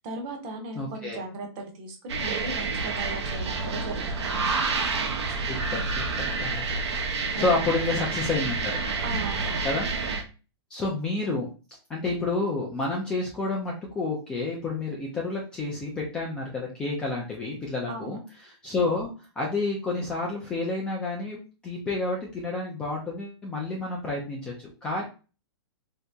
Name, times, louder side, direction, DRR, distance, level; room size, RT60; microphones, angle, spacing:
voice 1, 0.0-4.5 7.3-7.5 9.0-9.7 17.9-18.2, right 2 dB, 25° right, 3 dB, 0.6 m, -37 dB
voice 2, 0.8-1.2 5.3-6.7 7.2-8.8 9.6-9.9 10.7-11.5 11.9-19.1 19.4-25.0, left 3 dB, 5° left, -3 dB, 0.3 m, -30 dB
sound 1, 2.1-10.2, right 4 dB, 85° right, 0.8 m, -29 dB
2.8 x 2.7 x 3.3 m, 0.33 s
hypercardioid pair, 170°, 14 cm